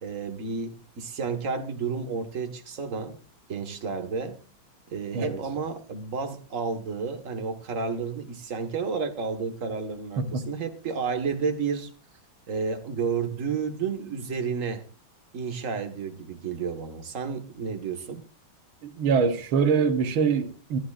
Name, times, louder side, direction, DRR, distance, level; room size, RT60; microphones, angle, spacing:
voice 1, 0.0-3.2 3.5-4.4 4.9-11.9 12.5-14.8 15.3-18.2, right 5 dB, 40° right, 1.8 m, -31 dB
voice 2, 18.8-20.8, right 5 dB, 85° right, 2.1 m, -24 dB
26.5 x 11.0 x 2.5 m
omnidirectional pair, 2.2 m